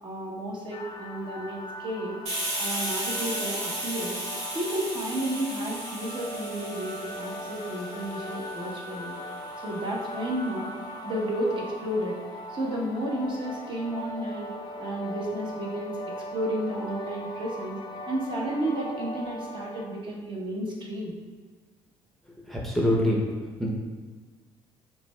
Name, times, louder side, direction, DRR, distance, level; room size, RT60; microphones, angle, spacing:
voice 1, 0.0-2.2 2.6-4.2 4.5-9.2 9.6-10.7 11.0-12.1 12.5-14.5 14.8-16.0 16.3-17.8 18.1-21.1, right 1 dB, 45° right, -3 dB, 0.9 m, -32 dB
sound 1, 0.7-19.9, left 1 dB, 40° left, 0.4 m, -39 dB
Hiss, 2.3-9.7, right 1 dB, 75° right, 1.2 m, -35 dB
voice 2, 22.5-23.2 23.6-23.7, left 1 dB, ahead, -3 dB, 0.6 m, -24 dB
5.5 x 2.3 x 2.2 m, 1.4 s
supercardioid pair, 70°, 12 cm